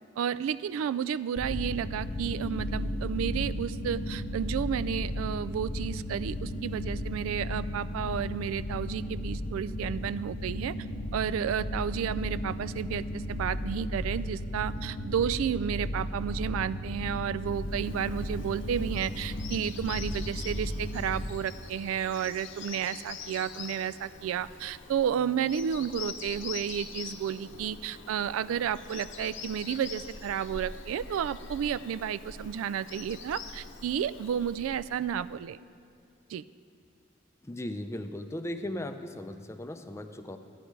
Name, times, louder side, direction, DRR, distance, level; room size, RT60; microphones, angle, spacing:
voice 1, 0.2-10.7 11.1-35.6 36.3-36.4, right 8 dB, 90° right, 16 dB, 0.3 m, -32 dB
sound 1, 1.4-21.3, left 1 dB, 85° left, 1.1 m, -35 dB
Bird vocalization bird call bird song, 17.5-35.5, left 5 dB, 65° left, 0.8 m, -44 dB
voice 2, 37.4-40.4, left 1 dB, 15° left, 8 dB, 0.4 m, -37 dB
13.5 x 10.0 x 4.7 m, 2.4 s
head